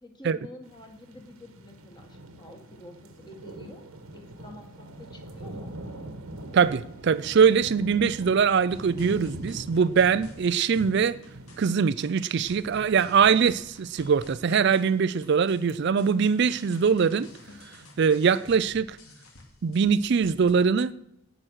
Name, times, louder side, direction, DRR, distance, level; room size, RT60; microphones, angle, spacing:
voice 1, 0.0-3.8 4.1-5.7, left 1 dB, 20° left, 1.7 m, -47 dB
sound 1, 0.6-18.1, right 1 dB, 85° right, 1.4 m, -44 dB
voice 2, 6.5-11.2 11.6-17.3 18.0-19.0 19.6-20.9, right 6 dB, 50° right, 0.4 m, -22 dB
sound 2, 8.7-20.5, left 2 dB, 85° left, 2.7 m, -50 dB
17.5 x 6.1 x 6.4 m
head